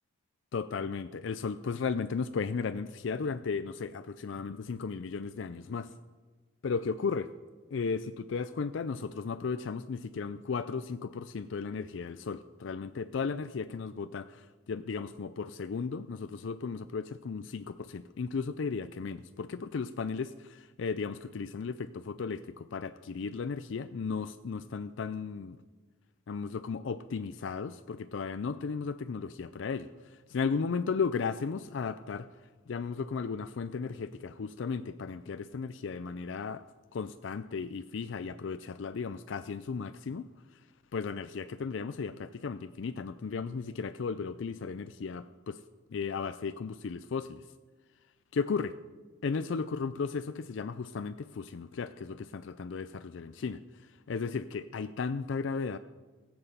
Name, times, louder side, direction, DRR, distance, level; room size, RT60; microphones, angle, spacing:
voice 1, 0.5-5.9 6.6-7.3 7.7-25.6 26.3-32.3 32.7-36.6 36.9-40.3 40.9-45.6 45.9-47.4 48.3-48.7 49.2-55.8, left 5 dB, 65° left, 12 dB, 0.4 m, -35 dB
16.5 x 7.8 x 6.7 m, 1.3 s
head